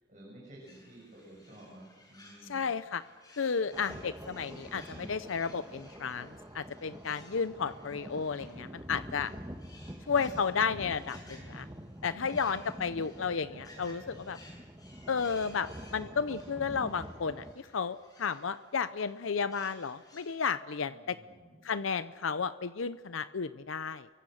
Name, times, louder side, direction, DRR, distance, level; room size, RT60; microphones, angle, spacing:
voice 1, 0.0-2.7 12.6-12.9 13.2-13.4 20.8-21.6, right 1 dB, 40° right, -4 dB, 7.3 m, -53 dB
sound 1, 0.7-20.3, left 1 dB, 20° left, 7.2 m, -58 dB
voice 2, 2.5-3.0 3.4-9.3 10.1-11.7 12.0-14.4 15.1-17.4 17.7-21.2 21.6-24.1, left 5 dB, 85° left, 13 dB, 0.6 m, -33 dB
sound 2, 3.7-17.5, equal, 15° right, 1.4 m, -46 dB
30.0 x 24.0 x 6.5 m, 1.5 s
head